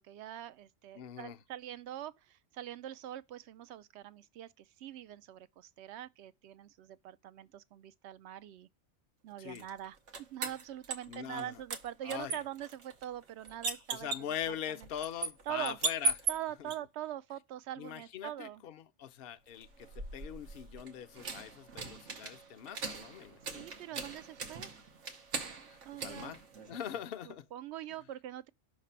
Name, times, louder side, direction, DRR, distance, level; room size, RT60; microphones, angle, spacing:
voice 1, 0.0-8.7 9.2-14.1 14.5-14.6 15.5-15.8 16.3-18.6 23.5-24.7 25.9-26.3 27.3-28.5, right 12 dB, 70° right, 0.8 m, -43 dB
voice 2, 0.9-1.4 9.4-9.7 11.1-11.6 12.0-12.4 13.9-16.2 16.6-16.7 17.8-24.1 25.7-26.4 26.7-27.5, left 10 dB, 60° left, 0.8 m, -42 dB
sound 1, 9.6-11.4 11.7-16.8 19.5-27.0, right 4 dB, 90° right, 1.3 m, -39 dB
5.8 x 3.3 x 5.6 m
omnidirectional pair, 1.2 m